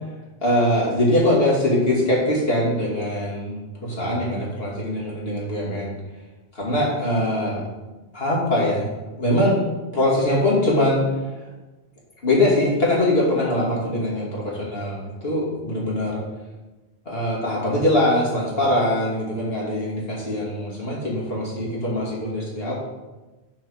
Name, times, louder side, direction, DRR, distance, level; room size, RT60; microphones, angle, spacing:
voice 1, 0.4-5.9 6.6-7.6 8.1-8.9 9.2-9.6 9.9-11.0 12.2-16.2 17.1-22.7, left 1 dB, 60° left, -5 dB, 2.7 m, -22 dB
9.0 x 4.6 x 6.4 m, 1.1 s
omnidirectional pair, 1.1 m